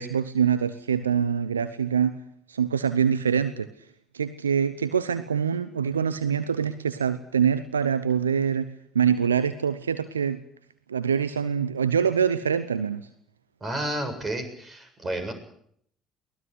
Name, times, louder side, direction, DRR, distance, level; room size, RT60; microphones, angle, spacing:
voice 1, 0.0-2.2 2.5-3.7 4.1-8.7 8.9-10.4 10.9-13.0, right 7 dB, 85° right, 13 dB, 0.8 m, -24 dB
voice 2, 13.6-15.3, right 1 dB, 30° right, 8 dB, 7.5 m, -31 dB
23.0 x 18.5 x 8.1 m, 0.67 s
figure-of-eight pair, 55°, 0 cm